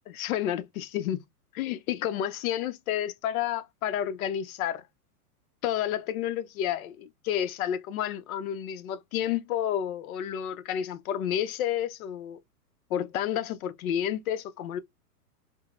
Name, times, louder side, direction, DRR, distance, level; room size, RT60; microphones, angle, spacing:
voice 1, 0.1-1.2 1.5-4.8 5.6-12.4 12.9-14.8, left 10 dB, 60° left, 0.6 m, -30 dB
3.8 x 2.1 x 2.3 m
hypercardioid pair, 130°, 47 cm